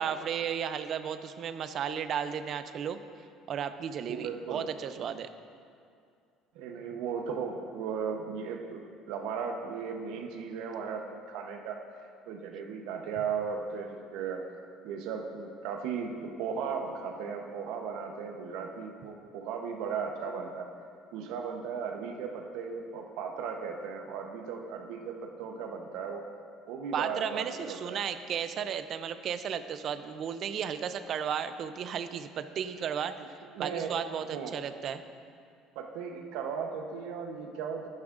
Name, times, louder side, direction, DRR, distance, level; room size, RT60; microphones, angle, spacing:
voice 1, 0.0-3.0 3.5-5.3 26.9-35.0, right 8 dB, 40° right, 11 dB, 0.4 m, -34 dB
voice 2, 4.1-4.6 6.5-11.8 12.3-14.5 14.8-20.7 21.1-26.3 26.7-28.0 33.5-33.9 34.3-34.5 35.8-37.9, right 6 dB, 75° right, 4 dB, 0.8 m, -36 dB
13.0 x 11.0 x 2.5 m, 2.3 s
cardioid pair, 160°, 0 cm